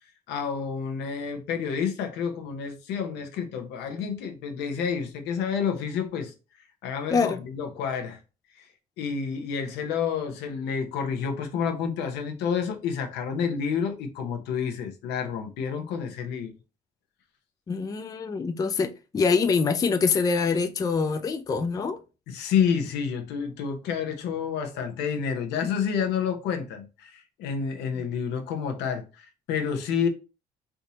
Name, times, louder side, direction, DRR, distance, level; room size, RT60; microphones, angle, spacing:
voice 1, 0.3-6.3 6.8-8.2 8.6-8.7 9.0-16.5 22.3-30.1, left 7 dB, 85° left, 0.8 m, -29 dB
voice 2, 7.1-7.4 17.7-22.0 28.0-28.1, left 5 dB, 20° left, 0.4 m, -25 dB
3.5 x 2.7 x 2.8 m
cardioid pair, 110°, 17 cm